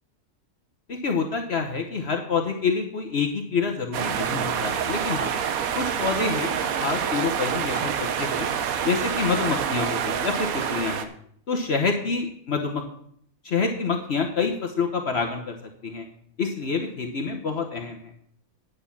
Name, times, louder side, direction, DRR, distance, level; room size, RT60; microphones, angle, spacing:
voice 1, 0.9-5.3 5.7-8.5 8.8-11.1 11.5-12.8 13.4-15.6 15.8-16.0 16.4-18.1, left 5 dB, 50° left, 3 dB, 1.2 m, -27 dB
sound 1, 3.9-11.0, right 8 dB, 85° right, 1.3 m, -27 dB
9.5 x 6.8 x 7.1 m, 0.65 s
omnidirectional pair, 1.5 m